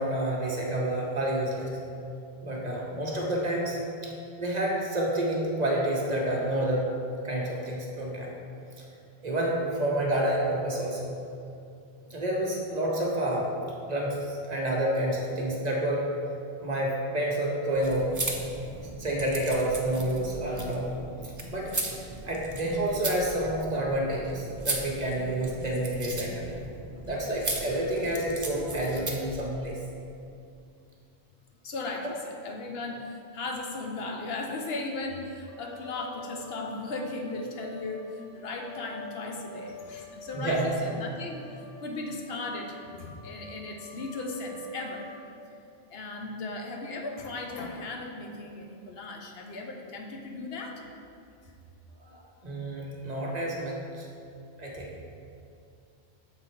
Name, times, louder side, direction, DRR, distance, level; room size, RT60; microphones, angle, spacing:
voice 1, 0.0-1.7 2.4-3.8 4.0-4.1 4.4-6.9 7.2-8.3 9.2-11.1 12.1-13.5 13.9-16.0 16.6-18.1 18.4-20.9 21.5-21.7 22.2-26.5 27.0-29.8 40.3-40.7 52.0-54.0 54.6-54.9, right 1 dB, 45° right, -2 dB, 1.0 m, -29 dB
sound 1, 17.7-29.4, right 2 dB, 25° right, 0.4 m, -37 dB
voice 2, 31.6-45.1 45.9-50.8 51.4-51.5, left 2 dB, 70° left, 2 dB, 0.9 m, -37 dB
sound 2, 35.5-45.2, left 3 dB, 20° left, 0.7 m, -47 dB
7.0 x 3.9 x 4.4 m, 2.5 s
omnidirectional pair, 1.1 m